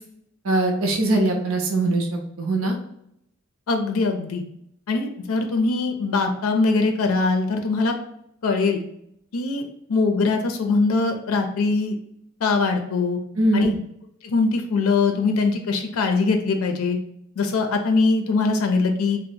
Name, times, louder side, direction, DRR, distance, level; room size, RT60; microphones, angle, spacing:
voice 1, 0.4-2.8 13.4-13.7, right 2 dB, 70° right, 0 dB, 0.6 m, -21 dB
voice 2, 3.7-4.4 4.9-7.9 8.4-8.8 9.3-12.0 12.4-13.2 13.5-13.7 14.2-17.0 17.4-19.2, left 3 dB, 90° left, 5 dB, 0.4 m, -22 dB
2.8 x 2.0 x 4.1 m, 0.73 s
head